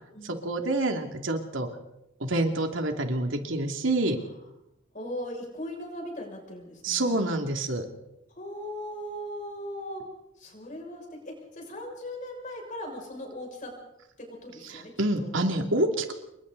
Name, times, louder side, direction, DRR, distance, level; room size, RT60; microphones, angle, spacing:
voice 1, 0.2-1.7 2.2-4.2 6.8-7.9 14.6-16.1, right 2 dB, 75° right, 4 dB, 2.8 m, -27 dB
voice 2, 4.9-7.2 8.3-10.0 10.4-13.7 14.2-15.3, left 1 dB, 40° left, 1 dB, 6.8 m, -39 dB
28.0 x 23.5 x 4.1 m, 0.88 s
head